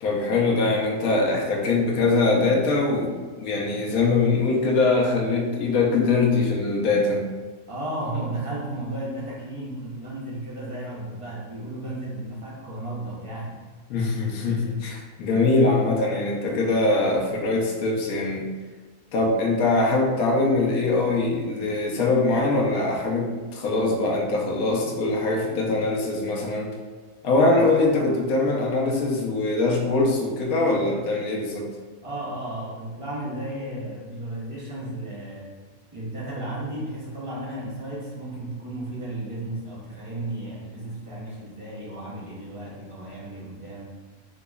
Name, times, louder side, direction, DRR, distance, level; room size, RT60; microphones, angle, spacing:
voice 1, 0.0-7.3 13.9-18.5 19.1-26.7 27.2-31.7, left 3 dB, 70° left, -2 dB, 1.1 m, -22 dB
voice 2, 7.7-13.6 32.0-35.5 35.9-43.9, right 1 dB, 40° right, -6 dB, 0.4 m, -34 dB
3.8 x 2.9 x 2.3 m, 1.4 s
omnidirectional pair, 1.6 m